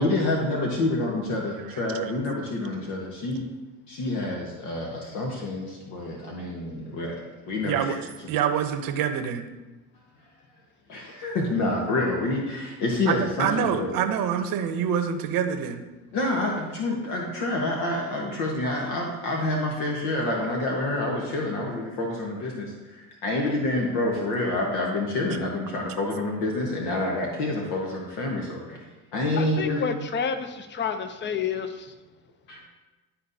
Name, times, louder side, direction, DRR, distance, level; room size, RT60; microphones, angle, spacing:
voice 1, 0.0-3.4 3.9-7.8 10.9-13.9 16.1-28.8 29.1-29.9 32.5-32.6, left 2 dB, 65° left, -1 dB, 1.4 m, -28 dB
voice 2, 1.7-2.1 7.6-8.0 8.3-9.5 13.1-15.8, right 8 dB, 55° right, 8 dB, 0.9 m, -26 dB
voice 3, 29.4-31.9, left 6 dB, 25° left, 9 dB, 0.7 m, -30 dB
11.5 x 4.2 x 2.7 m, 1.2 s
hypercardioid pair, 65°, 42 cm